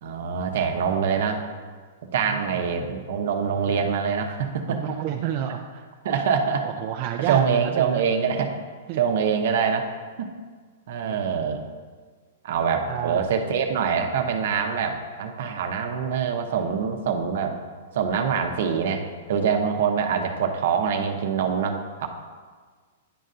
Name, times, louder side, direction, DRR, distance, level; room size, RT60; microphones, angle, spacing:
voice 1, 0.0-1.4 2.1-4.8 6.0-6.6 7.3-8.6 8.9-9.9 10.2-10.3 10.9-11.6 12.4-17.6 17.9-22.1, right 6 dB, 65° right, 5 dB, 0.7 m, -24 dB
voice 2, 2.2-2.6 4.7-5.9 6.2-6.3 6.6-8.0 8.9-9.0 11.0-11.2 12.9-13.2 16.5-16.6, right 10 dB, 45° right, 2 dB, 0.4 m, -31 dB
10.0 x 5.4 x 2.5 m, 1.5 s
hypercardioid pair, 135°, 0 cm